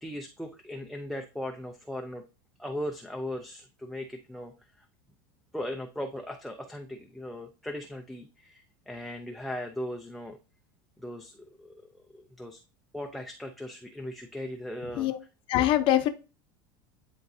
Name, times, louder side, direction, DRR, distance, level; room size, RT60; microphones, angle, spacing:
voice 1, 0.0-2.2 2.6-4.8 5.5-10.4 11.0-12.6 12.9-15.1, left 1 dB, ahead, 3 dB, 0.6 m, -38 dB
voice 2, 15.5-16.1, left 13 dB, 45° left, 10 dB, 0.9 m, -23 dB
10.5 x 3.7 x 2.8 m, 0.31 s
supercardioid pair, 140°, 12 cm